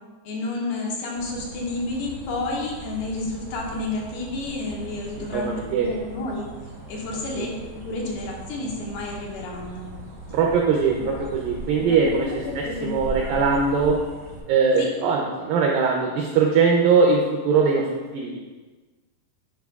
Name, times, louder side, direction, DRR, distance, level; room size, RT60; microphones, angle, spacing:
voice 1, 0.2-6.5 6.9-7.5 7.8-9.9 10.9-11.2 11.8-13.5 14.8-14.9, left 2 dB, 75° left, -2 dB, 2.8 m, -31 dB
sound 1, 1.1-14.4, right 2 dB, 35° right, 1.9 m, -39 dB
voice 2, 5.3-5.9 7.4-7.5 10.3-12.3 12.6-14.0 14.5-17.9 18.1-18.4, right 5 dB, 90° right, 0 dB, 2.0 m, -21 dB
10.0 x 4.9 x 2.3 m, 1.3 s
omnidirectional pair, 4.7 m